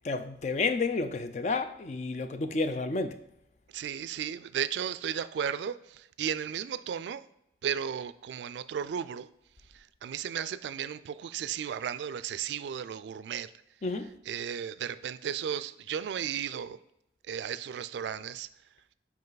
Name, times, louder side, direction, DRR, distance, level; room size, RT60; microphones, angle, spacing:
voice 1, 0.0-3.2 13.8-14.1, left 3 dB, 40° left, 0.4 m, -30 dB
voice 2, 3.7-7.2 7.6-9.3 9.7-13.5 14.3-16.8 17.3-18.5, right 8 dB, 80° right, 0.3 m, -34 dB
5.4 x 4.7 x 3.9 m
head